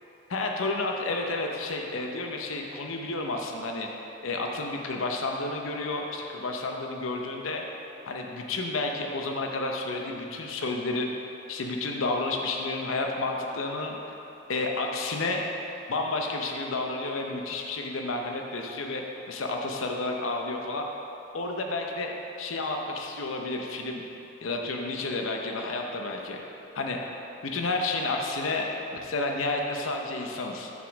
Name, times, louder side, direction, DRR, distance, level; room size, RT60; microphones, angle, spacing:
voice 1, 0.3-3.9 4.2-7.6 8.1-11.1 11.5-14.0 14.5-15.4 15.9-20.8 21.3-22.1 22.4-24.0 24.4-26.4 26.7-27.0 27.4-28.6 29.0-30.7, left 2 dB, 75° left, 1 dB, 0.7 m, -31 dB
6.7 x 5.0 x 6.0 m, 2.9 s
head